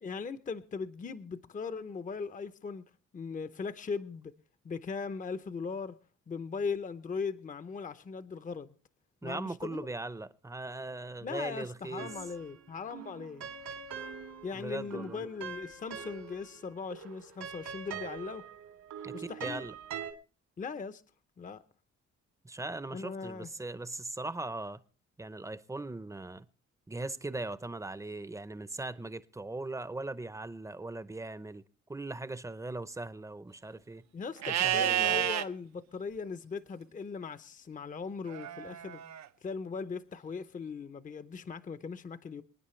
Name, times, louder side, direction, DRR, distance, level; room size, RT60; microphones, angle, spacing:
voice 1, 0.0-2.8 3.1-4.3 4.6-6.0 6.3-8.7 9.2-9.9 11.2-13.5 14.4-18.4 19.1-19.7 20.6-21.0 21.4-21.6 22.9-23.5 34.1-39.0 39.4-42.4, left 5 dB, 25° left, 0.7 m, -39 dB
voice 2, 9.2-12.1 14.5-15.2 19.0-19.7 22.4-24.8 25.2-26.5 26.9-31.6 31.9-34.0 34.6-35.3, right 2 dB, 10° right, 0.7 m, -39 dB
sound 1, 12.0-12.6 12.9-16.6 16.9-20.1, right 7 dB, 80° right, 2.6 m, -43 dB
Livestock farm animals working animals, 34.4-35.4 38.3-39.3, right 11 dB, 60° right, 0.7 m, -30 dB
27.5 x 9.6 x 3.2 m
cardioid pair, 90°, 30 cm